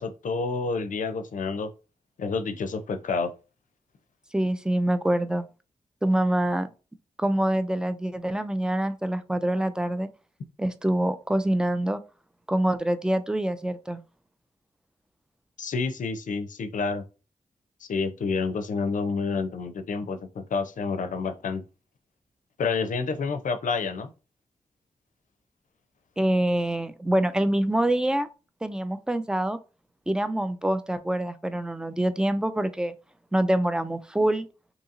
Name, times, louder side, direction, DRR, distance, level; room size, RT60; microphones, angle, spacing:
voice 1, 0.0-1.7 2.2-3.3 15.6-17.0 17.8-21.6 22.6-24.1, left 4 dB, 70° left, 0.5 m, -29 dB
voice 2, 4.3-5.5 6.0-6.7 7.2-10.1 10.6-12.0 12.5-14.0 26.2-28.3 28.6-29.6 30.1-32.9 33.3-34.5, right 1 dB, 5° right, 0.4 m, -25 dB
2.8 x 2.7 x 2.4 m
cardioid pair, 45°, 14 cm